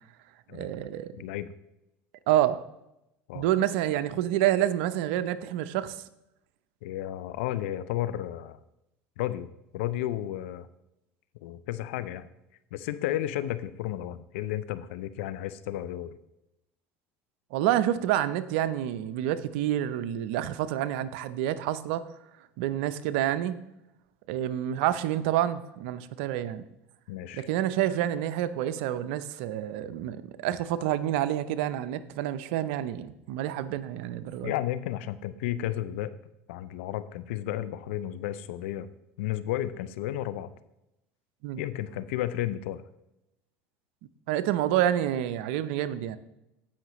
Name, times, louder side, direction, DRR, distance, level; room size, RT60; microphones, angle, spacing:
voice 1, 0.5-1.2 2.3-2.6 3.3-6.0 17.5-22.0 22.6-23.6 24.3-26.6 27.3-34.5 41.4-41.6 44.3-46.2, right 12 dB, 75° right, 13 dB, 0.6 m, -28 dB
voice 2, 1.2-1.5 3.3-3.4 6.8-8.6 9.2-9.5 9.7-10.7 11.4-12.3 12.7-16.2 27.1-27.5 34.4-36.1 36.5-38.9 39.2-40.5 41.6-42.8, left 13 dB, 80° left, 15 dB, 0.6 m, -32 dB
16.0 x 5.8 x 3.1 m, 0.87 s
hypercardioid pair, 90°, 6 cm